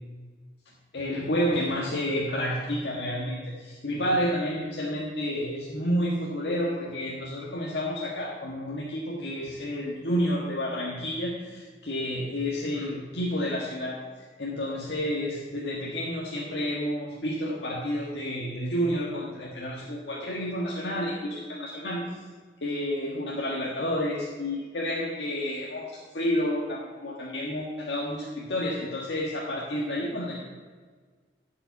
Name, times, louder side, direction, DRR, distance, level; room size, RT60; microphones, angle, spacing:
voice 1, 0.9-22.2 22.6-30.4, equal, 75° left, -3 dB, 1.5 m, -30 dB
11.0 x 5.6 x 8.3 m, 1.5 s
head